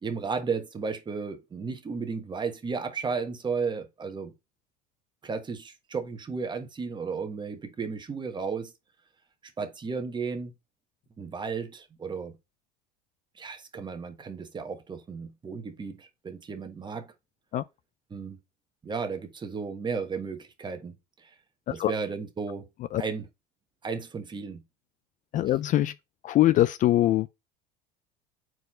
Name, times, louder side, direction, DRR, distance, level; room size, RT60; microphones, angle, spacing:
voice 1, 0.0-4.3 5.2-8.7 9.6-10.5 11.2-12.3 13.3-17.1 18.1-18.4 18.8-21.3 21.7-22.7 23.0-23.3 23.8-24.6, right 5 dB, 25° right, 1.3 m, -34 dB
voice 2, 25.3-25.9 26.2-27.3, left 14 dB, 40° left, 0.4 m, -23 dB
4.7 x 4.1 x 5.4 m
supercardioid pair, 105°, 19 cm